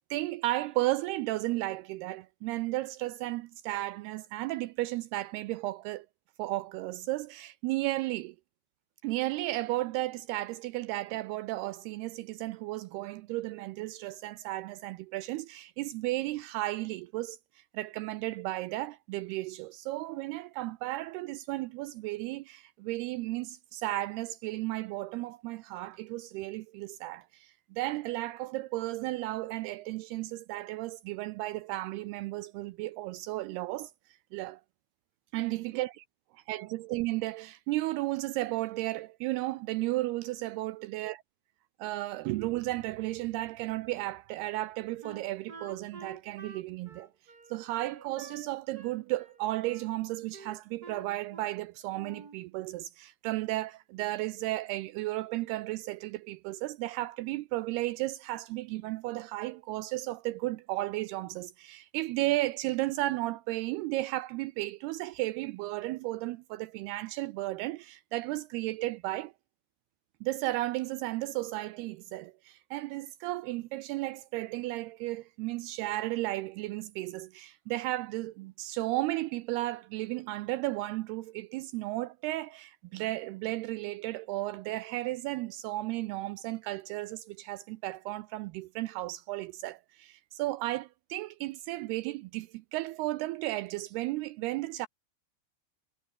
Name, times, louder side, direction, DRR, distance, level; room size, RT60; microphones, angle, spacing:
voice 1, 0.1-6.1 6.4-8.4 9.0-33.9 34.3-34.6 35.3-36.0 36.3-41.2 41.8-47.1 47.5-69.3 70.2-94.9, right 18 dB, 80° right, 2.4 m, -34 dB
Wind instrument woodwind instrument, 45.0-48.5 48.7-49.9 50.3-51.6 51.9-52.4, right 4 dB, 25° right, 2.9 m, -49 dB
omnidirectional pair, 5.0 m